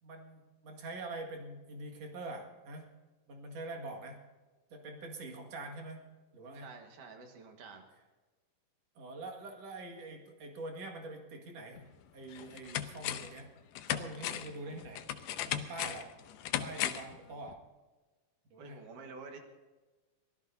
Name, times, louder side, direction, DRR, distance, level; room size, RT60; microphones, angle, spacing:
voice 1, 0.0-2.9 3.3-4.2 4.7-6.1 6.3-6.7 9.0-11.9 12.1-13.5 13.9-15.0 15.5-16.1 16.6-17.6 18.5-18.8, right 2 dB, 50° right, 2 dB, 2.9 m, -44 dB
voice 2, 6.5-7.9 18.6-19.4, right 4 dB, 70° right, 4 dB, 3.0 m, -49 dB
sound 1, 11.8-11.9 12.3-13.4 13.8-17.2 17.5-17.6, left 11 dB, 80° left, 2.3 m, -37 dB
24.0 x 16.5 x 2.7 m, 1.3 s
omnidirectional pair, 3.9 m